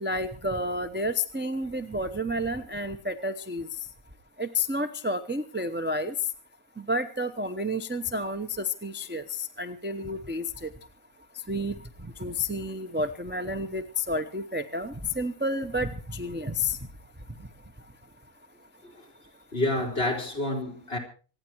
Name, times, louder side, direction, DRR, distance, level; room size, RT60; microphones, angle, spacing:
voice 1, 0.0-3.7 4.4-6.1 6.8-10.7 11.5-11.7 12.2-16.8, left 1 dB, 10° right, 0.6 m, -30 dB
voice 2, 19.5-21.0, left 1 dB, 45° left, 3.8 m, -29 dB
26.0 x 9.7 x 4.5 m
omnidirectional pair, 1.4 m